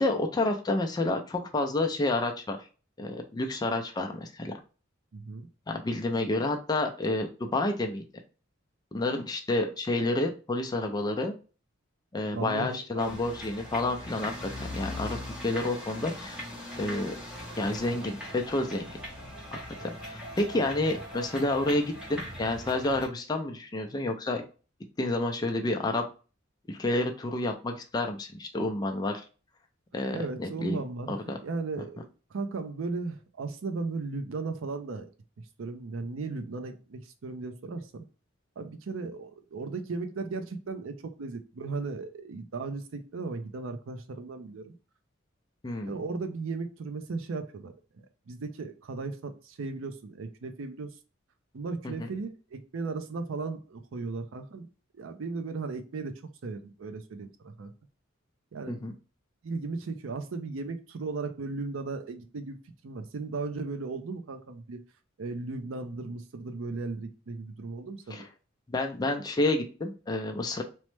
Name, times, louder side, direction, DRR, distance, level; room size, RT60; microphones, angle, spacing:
voice 1, 0.0-2.6 3.0-4.5 5.7-8.0 8.9-11.3 12.1-15.2 15.4-16.4 16.8-17.1 17.6-18.9 19.8-24.4 25.0-26.0 26.7-29.2 29.9-30.8 31.1-31.4 45.6-45.9 51.8-52.1 58.7-58.9 68.1-68.2 68.7-70.6, left 2 dB, 20° left, 3 dB, 0.4 m, -29 dB
voice 2, 5.1-5.5 12.3-13.2 30.1-31.2 31.4-35.1 35.6-38.0 38.6-44.7 45.9-47.7 48.3-50.9 51.5-54.7 55.0-56.1 56.4-57.7 58.5-58.8 59.4-62.6 62.8-64.8 65.2-68.3, right 3 dB, 75° right, 7 dB, 0.5 m, -36 dB
sound 1, 13.0-23.1, left 1 dB, 5° right, 0.7 m, -40 dB
3.1 x 2.1 x 3.1 m, 0.35 s
head